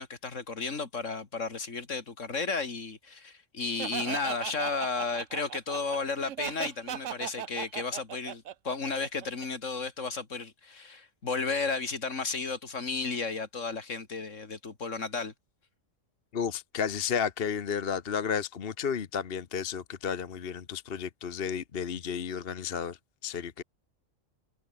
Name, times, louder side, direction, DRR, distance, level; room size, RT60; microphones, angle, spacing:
voice 1, 0.0-15.3, left 4 dB, 75° left, 2.8 m, -33 dB
Laughter, 3.8-9.5, right 10 dB, 75° right, 1.2 m, -38 dB
voice 2, 16.3-23.6, left 7 dB, 50° left, 1.2 m, -32 dB
omnidirectional pair, 1.3 m